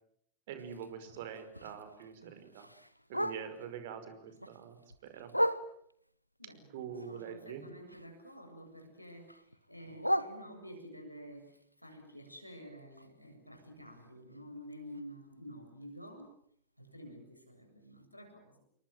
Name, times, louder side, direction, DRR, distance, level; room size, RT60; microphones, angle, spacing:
voice 1, 0.5-2.7 3.1-5.3 6.7-7.6, right 8 dB, 55° right, 9 dB, 5.3 m, -45 dB
Bark, 0.6-3.8 4.2-6.1 6.5-8.4 8.6-11.0 11.4-15.3 15.7-15.8 16.1-16.4 16.9-17.0 17.3-17.4 17.9-18.0, equal, 90° right, 1.3 m, -39 dB
voice 2, 6.4-16.3 16.8-18.6, equal, 90° left, 4 dB, 7.8 m, -50 dB
30.0 x 23.5 x 7.8 m, 0.68 s
figure-of-eight pair, 90°, 0 cm